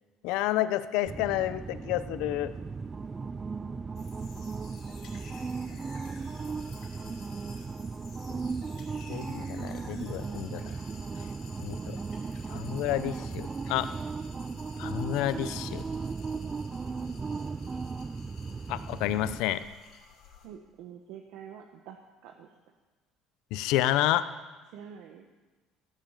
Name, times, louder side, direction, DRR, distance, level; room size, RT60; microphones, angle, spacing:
voice 1, 0.2-2.5 9.1-10.7 11.6-12.0 12.5-13.9 14.8-15.8 18.7-19.6 23.5-24.2, left 14 dB, 75° left, 13 dB, 0.7 m, -29 dB
sound 1, 1.0-19.4, right 4 dB, 20° right, 0.3 m, -36 dB
sound 2, 3.9-20.5, left 5 dB, 55° left, 5.0 m, -52 dB
voice 2, 20.4-22.0 22.2-22.5 24.7-25.3, right 8 dB, 70° right, 3 dB, 1.2 m, -46 dB
16.0 x 7.5 x 9.0 m, 1.2 s
cardioid pair, 125°, 0 cm